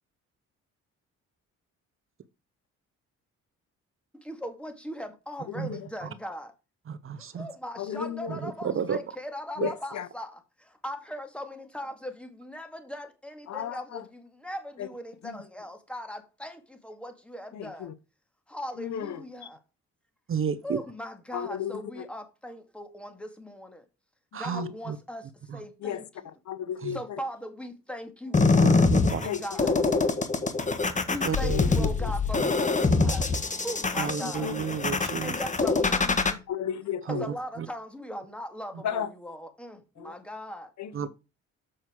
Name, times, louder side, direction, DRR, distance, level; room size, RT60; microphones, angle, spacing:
voice 1, 4.1-6.5 7.2-17.9 18.5-19.6 20.6-23.8 24.4-26.0 26.9-29.8 31.0-33.3 33.6-34.6 35.2-36.4 37.1-40.7, equal, 5° left, 2.2 m, -39 dB
voice 2, 5.5-5.9 7.8-8.4 9.6-10.1 13.5-14.1 14.8-14.9 15.2-15.4 17.5-17.9 18.7-19.5 21.3-22.1 24.5-24.7 25.8-27.2 29.2-29.8 31.5-32.1 34.2-34.6 34.9-35.0 36.5-37.3 38.8-39.1 40.0-40.1 40.8-41.1, left 9 dB, 65° left, 1.0 m, -35 dB
voice 3, 6.9-7.5 8.3-9.0 9.6-9.7 20.3-20.8 24.3-25.0 25.5-25.6 26.8-27.0 28.6-29.2 31.2-31.9 32.4-32.5 34.0-35.3 37.1-37.2 37.6-37.7 40.9-41.1, right 7 dB, 45° right, 0.9 m, -32 dB
sound 1, 28.3-36.3, left 3 dB, 25° left, 1.4 m, -24 dB
7.6 x 6.0 x 4.7 m
cardioid pair, 90°, 30 cm